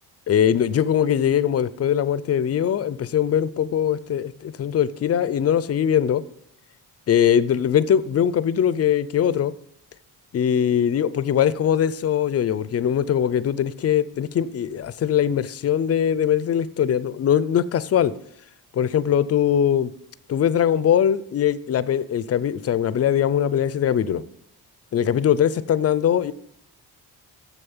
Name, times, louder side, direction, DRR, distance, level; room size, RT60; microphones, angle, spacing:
voice 1, 0.3-6.2 7.1-9.5 10.3-18.1 18.7-19.9 20.3-24.2 24.9-26.3, left 9 dB, 40° left, 16 dB, 0.4 m, -21 dB
7.2 x 6.8 x 7.1 m, 0.73 s
wide cardioid pair, 155°, 39 cm